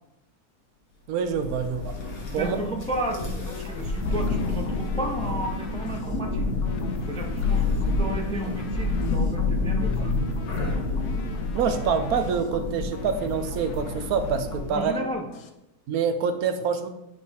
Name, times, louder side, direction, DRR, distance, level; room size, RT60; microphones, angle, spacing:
voice 1, 1.1-1.9 2.3-2.6 11.5-14.9 15.9-16.9, right 6 dB, 75° right, 9 dB, 1.1 m, -26 dB
Thunder, 1.2-14.9, left 3 dB, 65° left, 1.7 m, -28 dB
voice 2, 2.4-6.5 7.0-10.1 14.7-15.3, right 1 dB, 10° left, 2 dB, 0.3 m, -33 dB
sound 1, 2.9-15.5, left 5 dB, 80° left, 1.3 m, -43 dB
10.0 x 4.2 x 3.5 m, 0.87 s
omnidirectional pair, 1.6 m